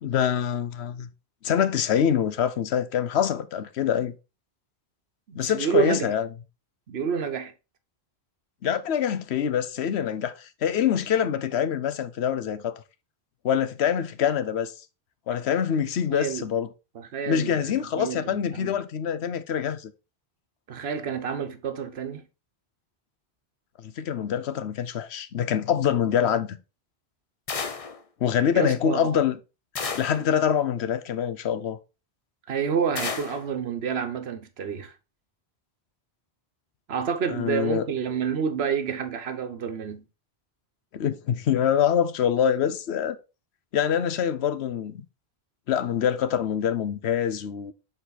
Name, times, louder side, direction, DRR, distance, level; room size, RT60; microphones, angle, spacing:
voice 1, 0.0-1.1 1.4-4.1 5.3-6.3 8.6-12.8 13.4-14.7 15.3-16.7 17.3-19.9 23.8-26.6 28.2-29.3 30.0-31.8 37.3-37.9 40.9-43.2 43.7-45.0 45.7-47.7, left 8 dB, 85° left, 1.0 m, -25 dB
voice 2, 5.3-6.1 6.9-7.5 16.1-16.5 16.9-18.8 20.7-22.2 28.5-29.2 32.5-34.9 36.9-40.1, right 7 dB, 75° right, 1.2 m, -29 dB
sound 1, 27.5-28.0 29.7-30.3 32.9-33.5, left 5 dB, 40° left, 0.7 m, -32 dB
7.0 x 4.1 x 4.1 m
omnidirectional pair, 1.1 m